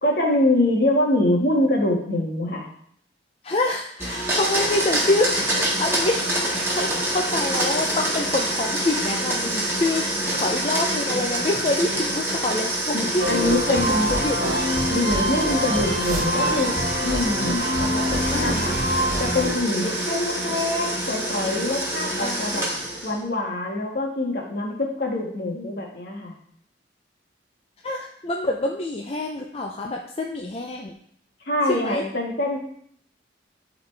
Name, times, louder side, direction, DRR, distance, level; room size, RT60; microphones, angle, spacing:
voice 1, 0.0-2.7 12.9-14.1 14.9-18.8 19.2-22.6 23.0-26.3 31.4-32.6, left 1 dB, 55° left, 0 dB, 1.6 m, -24 dB
voice 2, 3.4-10.1 10.3-14.7 18.3-18.6 22.2-22.6 27.8-31.0 31.7-32.0, left 2 dB, 35° left, 1 dB, 0.5 m, -26 dB
Domestic sounds home sounds, 4.0-23.2, right 1 dB, 15° right, 1.6 m, -26 dB
sound 1, 13.2-19.5, equal, 50° right, 1.4 m, -25 dB
12.0 x 4.0 x 3.3 m, 0.65 s
head